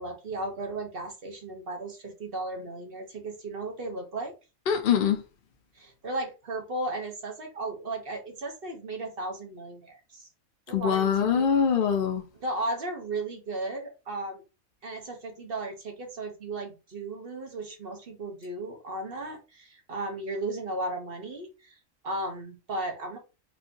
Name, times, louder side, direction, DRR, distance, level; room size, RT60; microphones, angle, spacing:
voice 1, 0.0-4.3 5.7-10.3 10.7-11.5 12.4-14.4 14.8-21.8 22.0-23.2, right 2 dB, 45° right, 1.1 m, -35 dB
voice 2, 4.7-5.2 10.7-12.2, left 7 dB, 50° left, 0.7 m, -23 dB
4.3 x 2.8 x 2.7 m
omnidirectional pair, 1.5 m